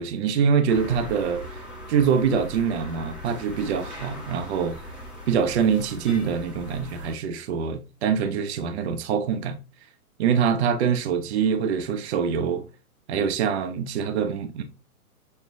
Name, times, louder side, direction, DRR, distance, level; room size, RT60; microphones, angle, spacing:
voice 1, 0.0-1.4 1.9-4.8 5.3-9.6 10.2-12.6 13.1-14.6, right 7 dB, 45° right, 0.7 m, -24 dB
sound 1, 0.7-7.1, equal, 5° right, 0.9 m, -39 dB
6.3 x 2.3 x 2.6 m
hypercardioid pair, 140°, 44 cm